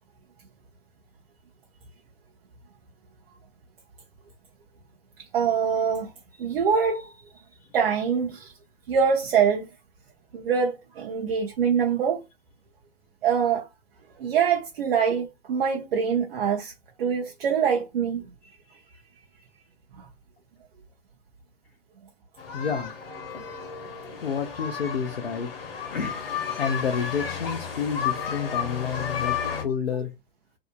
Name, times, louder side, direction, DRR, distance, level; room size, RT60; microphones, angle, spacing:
voice 1, 5.3-6.1 6.4-7.2 7.7-8.5 8.9-9.7 10.3-12.2 13.2-13.7 14.2-16.7 17.0-18.2 20.0-20.1, right 7 dB, 65° right, 0.7 m, -24 dB
sound 1, 22.4-29.6, left 7 dB, 65° left, 1.0 m, -32 dB
voice 2, 22.5-22.9 24.2-25.5 25.9-26.2 26.6-29.3 29.6-30.1, left 7 dB, 80° left, 0.6 m, -29 dB
2.7 x 2.6 x 2.2 m
figure-of-eight pair, 95°, 31 cm